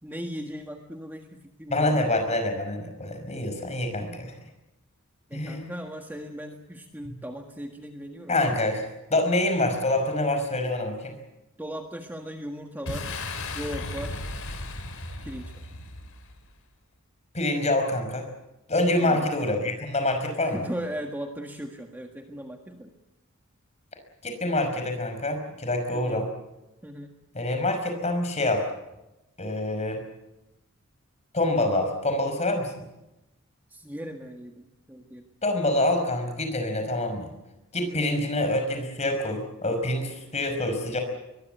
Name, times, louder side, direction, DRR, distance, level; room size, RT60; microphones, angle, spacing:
voice 1, 0.0-2.1 5.3-8.3 11.6-13.2 13.5-14.2 15.2-15.7 19.0-19.2 20.4-22.9 25.9-26.2 26.8-27.1 33.7-35.2 37.8-38.1, equal, 10° right, 3 dB, 1.6 m, -38 dB
voice 2, 1.7-4.3 5.3-5.7 7.0-7.1 8.3-11.2 17.3-18.3 18.7-20.6 24.2-26.3 27.3-28.7 29.4-30.1 31.3-32.8 35.4-37.3 37.7-41.0, left 1 dB, 30° left, 6 dB, 5.5 m, -26 dB
Boom, 12.9-16.5, left 2 dB, 70° left, 3.8 m, -35 dB
23.0 x 22.0 x 8.1 m, 0.96 s
head